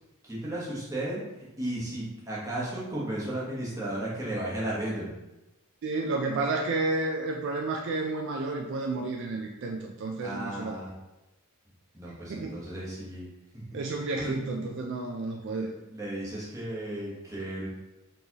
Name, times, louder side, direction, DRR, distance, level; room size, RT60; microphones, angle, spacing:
voice 1, 0.2-1.2 1.6-5.1 10.2-10.9 11.9-13.3 13.5-13.6 14.2-14.3 15.9-17.7, right 1 dB, 15° right, -7 dB, 1.2 m, -34 dB
voice 2, 5.8-10.8 12.3-12.6 13.7-15.7, right 3 dB, 55° right, 1 dB, 0.4 m, -31 dB
4.4 x 3.3 x 2.9 m, 1.0 s
head